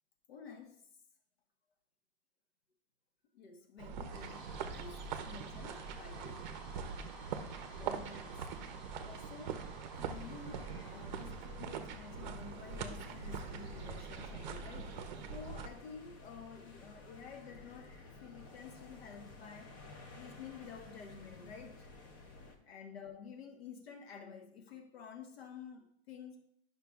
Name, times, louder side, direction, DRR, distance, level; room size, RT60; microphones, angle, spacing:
voice 1, 0.3-0.9 3.3-6.6 7.7-8.4 9.1-9.7 10.0-19.8 20.1-21.9 22.6-26.4, left 6 dB, 75° left, 1.3 m, -51 dB
sound 1, 3.8-15.7, right 6 dB, 45° right, 0.6 m, -43 dB
sound 2, 4.0-14.3, right 2 dB, ahead, 0.8 m, -54 dB
sound 3, 9.9-22.6, left 3 dB, 20° left, 0.4 m, -54 dB
9.9 x 5.9 x 2.3 m
supercardioid pair, 175°, 32 cm